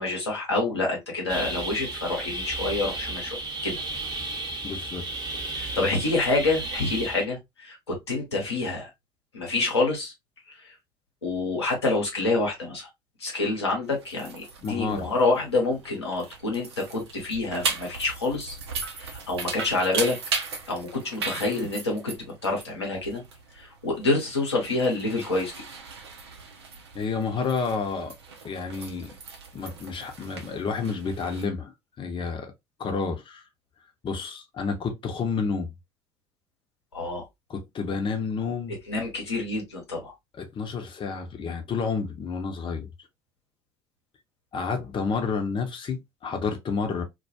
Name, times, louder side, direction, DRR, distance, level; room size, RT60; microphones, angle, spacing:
voice 1, 0.0-3.8 5.5-8.9 9.3-10.1 10.5-10.7 11.2-12.9 13.2-18.6 18.9-20.2 20.7-22.2 22.4-23.2 23.5-25.5 36.9-37.2 38.9-40.1, left 2 dB, 85° left, 0.8 m, -27 dB
sound 1, 1.3-7.2, right 2 dB, 30° right, 0.8 m, -33 dB
voice 2, 4.6-5.1 5.3-5.4 14.6-15.1 26.9-28.1 28.4-29.1 29.5-31.7 32.0-32.5 32.8-33.4 34.0-35.7 37.5-38.8 40.4-42.9 44.5-47.0, left 5 dB, 40° left, 0.8 m, -30 dB
sound 2, 13.8-31.4, right 4 dB, 80° right, 0.5 m, -37 dB
2.3 x 2.3 x 2.7 m
figure-of-eight pair, 55°, 14 cm